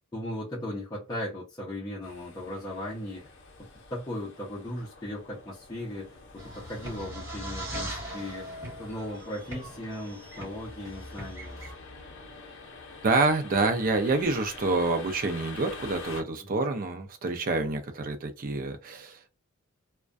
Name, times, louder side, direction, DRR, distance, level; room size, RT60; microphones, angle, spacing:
voice 1, 0.1-3.3 3.9-11.6 16.4-16.6, left 1 dB, 15° left, 0.7 m, -37 dB
sound 1, 2.0-16.2, left 3 dB, 60° left, 0.6 m, -47 dB
sound 2, 6.4-11.7, right 1 dB, 15° right, 1.4 m, -40 dB
voice 2, 13.0-19.3, right 3 dB, 40° right, 0.4 m, -27 dB
2.4 x 2.2 x 2.4 m
head